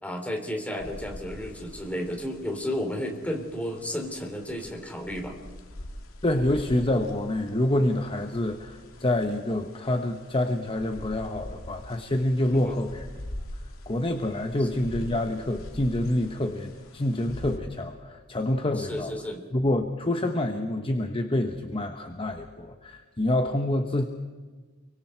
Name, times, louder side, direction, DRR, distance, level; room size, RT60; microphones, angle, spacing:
voice 1, 0.0-5.4 12.5-12.8 14.6-14.7 18.8-19.4, equal, 5° left, 2 dB, 3.5 m, -33 dB
sound 1, 0.8-17.6, left 1 dB, 85° left, 2.3 m, -44 dB
voice 2, 6.2-13.1 13.9-19.1 19.5-24.0, left 1 dB, 25° left, 6 dB, 1.1 m, -27 dB
29.0 x 24.0 x 4.5 m, 1.4 s
head